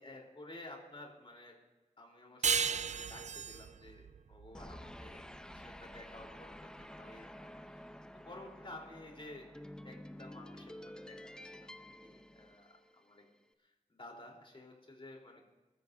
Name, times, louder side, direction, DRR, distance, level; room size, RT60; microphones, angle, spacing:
voice 1, 0.0-1.6 2.0-7.9 8.3-9.5 9.8-13.2 13.6-15.4, left 2 dB, 40° left, -1 dB, 3.7 m, -53 dB
sound 1, 2.4-5.6, right 6 dB, 55° right, 0.4 m, -35 dB
sound 2, 4.5-13.1, left 1 dB, 5° left, 0.7 m, -50 dB
26.5 x 13.5 x 2.7 m, 1.1 s
wide cardioid pair, 80°, 14 cm